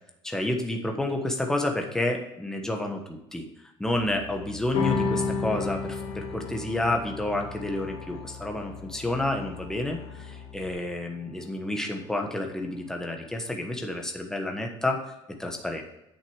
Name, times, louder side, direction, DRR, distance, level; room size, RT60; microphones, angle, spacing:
voice 1, 0.2-3.4 3.8-15.0 15.4-15.8, left 1 dB, 5° left, 2 dB, 1.3 m, -30 dB
Musical instrument, 3.9-10.7, left 6 dB, 90° left, 1.1 m, -45 dB
sound 1, 4.7-11.5, left 4 dB, 75° left, 2.8 m, -33 dB
8.5 x 6.4 x 4.9 m, 0.89 s
cardioid pair, 155°, 11 cm